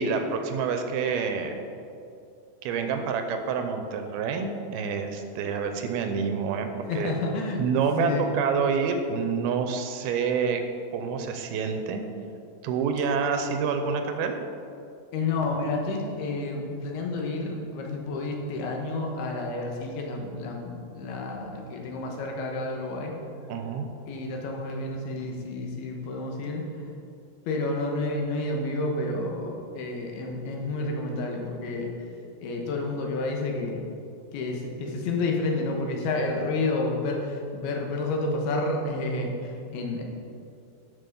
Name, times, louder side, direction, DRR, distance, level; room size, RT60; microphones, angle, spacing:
voice 1, 0.0-1.6 2.6-6.7 6.9-7.1 7.6-10.6 10.9-12.0 12.6-14.4 23.5-23.9, right 5 dB, 90° right, 6 dB, 2.6 m, -27 dB
voice 2, 6.9-7.6 8.0-8.3 15.1-23.1 24.1-26.6 27.5-31.9 32.4-33.8 34.3-40.0, left 2 dB, 80° left, 1 dB, 3.1 m, -30 dB
11.5 x 5.8 x 5.3 m, 2.6 s
omnidirectional pair, 4.5 m